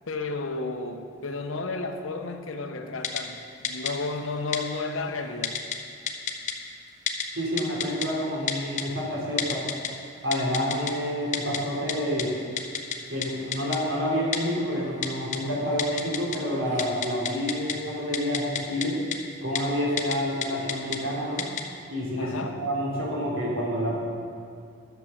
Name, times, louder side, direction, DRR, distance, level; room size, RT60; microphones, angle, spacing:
voice 1, 0.1-5.6 22.2-22.6, left 3 dB, 80° left, 6 dB, 0.9 m, -32 dB
Typing, 3.0-3.2 3.6-3.9 4.5-4.6 5.4-5.8 6.1-6.5 7.1-7.2 7.6-8.1 8.5-8.8 9.4-9.9 10.3-10.9 11.3-11.6 11.9-12.0 12.2-12.3 12.6-13.0 13.2-13.3 13.5-13.8 14.3-14.4 15.0-15.4 15.8-16.4 16.7-17.7 18.1-18.9 19.1-19.2 19.6-19.7 20.0-20.2 20.4-21.0 21.4-21.6, left 8 dB, 35° left, 0.7 m, -28 dB
voice 2, 7.3-9.6 10.2-12.3 13.1-19.0 19.4-21.5 21.9-24.0, equal, 85° right, -4 dB, 3.2 m, -28 dB
11.5 x 7.1 x 6.6 m, 2.4 s
head